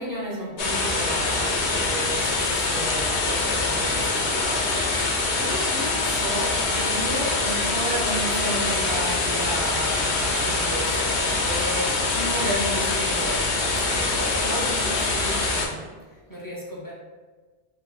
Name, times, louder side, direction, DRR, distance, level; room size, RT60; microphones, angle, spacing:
voice 1, 0.0-16.9, equal, 30° left, -5 dB, 0.4 m, -33 dB
sound 1, 0.6-15.7, left 3 dB, 75° left, 0.9 m, -24 dB
2.7 x 2.2 x 4.0 m, 1.4 s
omnidirectional pair, 1.2 m